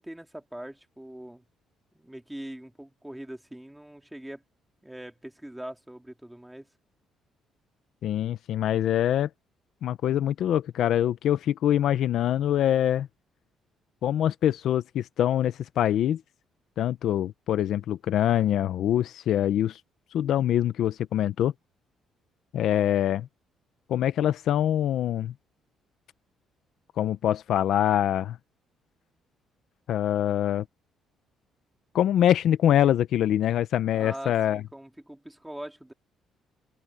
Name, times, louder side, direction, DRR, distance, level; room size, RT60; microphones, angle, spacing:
voice 1, 0.0-1.4 1.9-4.4 4.8-6.7 33.9-35.9, right 1 dB, 5° right, 2.1 m, -42 dB
voice 2, 8.0-9.3 9.8-13.1 14.0-16.2 16.8-19.8 20.1-21.5 22.5-23.3 23.9-25.3 27.0-28.4 29.9-30.6 31.9-34.6, left 11 dB, 60° left, 0.6 m, -24 dB
open air
cardioid pair, 170°, 0 cm